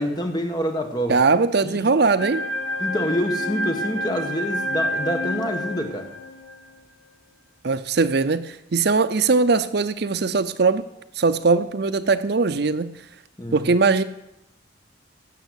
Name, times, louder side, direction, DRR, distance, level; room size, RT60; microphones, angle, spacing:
voice 1, 0.0-1.2 1.6-1.9 2.8-6.1 13.4-13.7, equal, 20° left, 4 dB, 1.7 m, -26 dB
voice 2, 1.1-2.4 7.6-10.8 11.2-12.9 13.5-14.0, right 4 dB, 55° right, 12 dB, 0.6 m, -20 dB
sound 1, 2.2-6.7, equal, 70° left, 3.2 m, -28 dB
17.0 x 7.1 x 8.3 m, 0.87 s
head